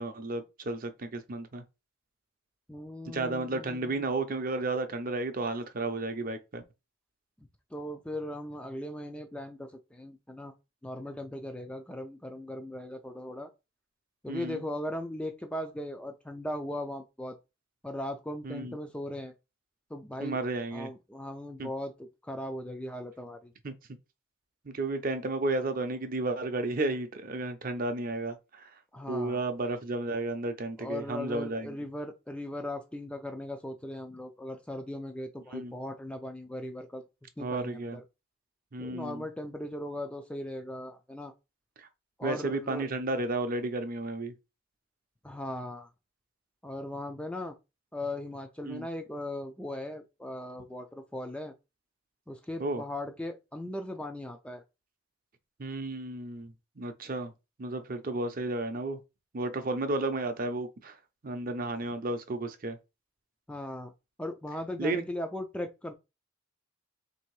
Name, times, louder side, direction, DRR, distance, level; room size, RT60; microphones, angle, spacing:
voice 1, 0.0-1.6 3.1-6.6 14.3-14.6 18.4-18.8 20.2-20.9 21.6-21.7 23.6-23.7 24.6-28.7 29.1-31.7 35.5-35.7 37.4-38.0 38.7-39.3 41.8-41.9 42.2-44.3 48.6-48.9 52.6-52.8 55.6-57.3 57.6-59.0 59.3-61.0 61.2-62.8 64.8-65.0, right 2 dB, 40° right, 0.5 m, -33 dB
voice 2, 2.7-3.9 7.7-10.5 10.8-13.5 14.2-17.4 17.8-19.3 19.9-20.4 20.7-21.9 22.2-23.5 28.9-29.4 30.8-37.0 37.4-38.0 38.8-41.3 42.2-42.9 45.2-45.9 46.6-47.6 47.9-51.5 52.3-54.6 63.5-63.9 64.2-65.9, left 1 dB, 5° left, 0.3 m, -38 dB
3.3 x 2.7 x 4.6 m
head